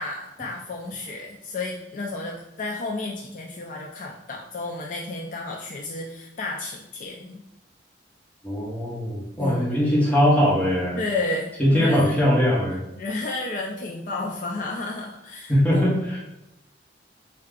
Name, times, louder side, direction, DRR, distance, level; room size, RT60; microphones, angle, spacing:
voice 1, 0.0-7.4 9.4-9.8 11.0-12.1 13.0-15.8, left 2 dB, 45° left, -1 dB, 0.4 m, -32 dB
voice 2, 8.4-11.0 11.6-12.8 15.5-16.2, equal, 10° left, -5 dB, 1.1 m, -21 dB
4.5 x 2.3 x 3.6 m, 0.92 s
head